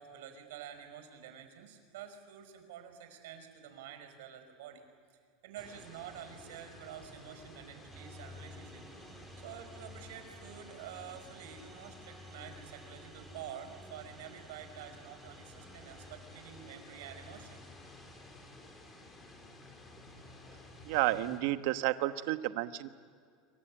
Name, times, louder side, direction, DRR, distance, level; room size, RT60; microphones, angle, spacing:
voice 1, 0.0-4.8 5.4-8.8 9.4-17.6, right 9 dB, 90° right, 7 dB, 5.3 m, -48 dB
sound 1, 5.6-21.4, left 2 dB, 15° left, 3.5 m, -54 dB
sound 2, 7.9-18.7, left 1 dB, 15° right, 2.4 m, -54 dB
voice 2, 20.8-22.9, right 15 dB, 55° right, 10 dB, 1.1 m, -31 dB
27.0 x 23.5 x 8.8 m, 2.1 s
supercardioid pair, 180°, 0 cm